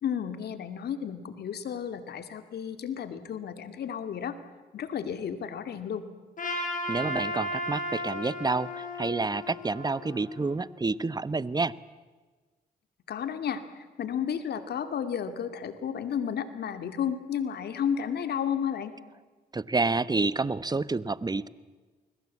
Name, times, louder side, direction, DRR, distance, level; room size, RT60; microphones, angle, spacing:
voice 1, 0.0-4.4 4.7-6.1 13.1-18.9, left 8 dB, 70° left, 9 dB, 2.4 m, -32 dB
Trumpet, 6.4-10.7, left 1 dB, 50° left, 7.7 m, -35 dB
voice 2, 6.7-11.7 19.5-21.5, right 3 dB, 25° right, 17 dB, 1.0 m, -29 dB
28.5 x 21.5 x 8.5 m, 1.3 s
supercardioid pair, 60°, 18 cm